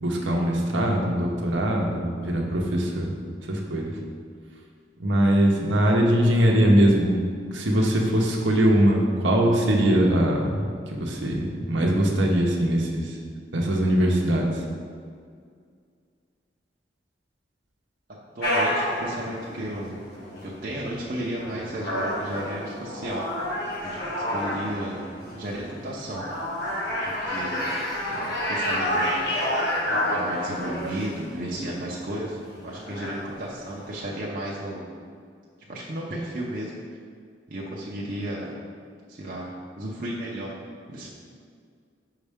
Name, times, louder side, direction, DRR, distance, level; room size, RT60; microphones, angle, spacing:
voice 1, 0.0-3.1 3.5-3.9 5.0-7.1 7.5-13.2 13.5-14.6, right 1 dB, 90° right, 0 dB, 0.9 m, -22 dB
voice 2, 18.3-20.0 20.4-23.3 23.8-26.3 27.0-27.7 28.0-29.1 29.9-34.8 35.7-36.7 37.5-38.5 39.1-39.5 39.8-40.5 40.9-41.1, right 1 dB, 50° right, -5 dB, 0.7 m, -34 dB
sound 1, 18.4-34.0, left 1 dB, 65° left, 1.3 m, -30 dB
5.6 x 5.4 x 3.6 m, 2.1 s
head